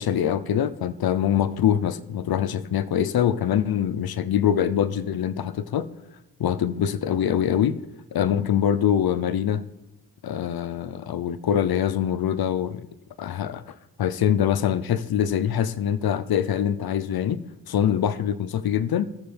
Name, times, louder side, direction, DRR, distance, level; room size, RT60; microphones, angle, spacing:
voice 1, 0.0-5.9 6.4-7.8 8.1-9.7 10.2-12.9 13.2-13.6 14.0-19.1, left 9 dB, 55° left, 0.7 m, -24 dB
17.0 x 6.9 x 3.4 m
supercardioid pair, 45°, 43 cm